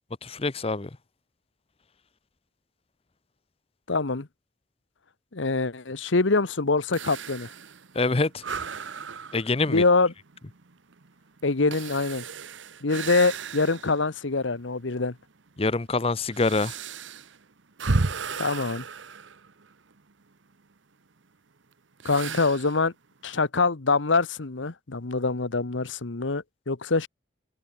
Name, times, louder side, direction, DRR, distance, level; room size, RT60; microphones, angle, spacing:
voice 1, 0.2-0.9 7.9-8.4 9.3-9.8 15.6-16.8, left 3 dB, 30° left, 0.7 m, -25 dB
voice 2, 3.9-4.3 5.3-7.5 9.7-10.1 11.4-12.2 12.8-15.2 18.4-18.8 22.0-22.9 23.2-27.1, left 3 dB, 85° left, 1.2 m, -24 dB
sound 1, 6.9-14.1 14.6-14.7 15.4-20.0 22.0-22.8, right 4 dB, 80° right, 1.1 m, -34 dB
head